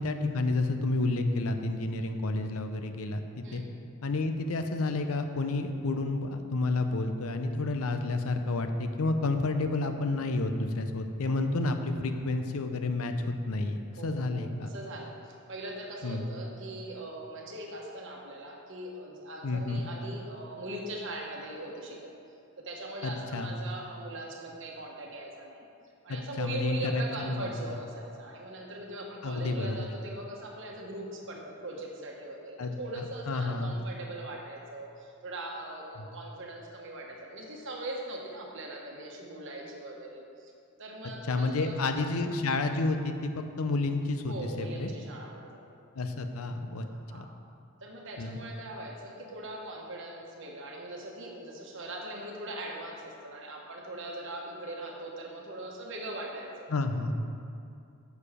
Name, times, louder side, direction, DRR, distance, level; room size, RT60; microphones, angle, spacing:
voice 1, 0.0-3.6 4.0-14.7 16.0-16.3 19.4-19.8 23.0-23.5 26.1-27.5 29.2-29.9 32.6-33.7 41.3-44.9 46.0-46.9 47.1-47.3 48.2-48.4 56.7-57.2, left 2 dB, 75° left, 7 dB, 0.6 m, -30 dB
voice 2, 14.0-22.1 22.6-25.7 26.0-40.5 40.8-42.2 44.3-45.6 46.8-47.3 47.8-56.7, right 1 dB, 55° right, -1 dB, 1.2 m, -41 dB
7.0 x 6.8 x 5.0 m, 2.5 s
head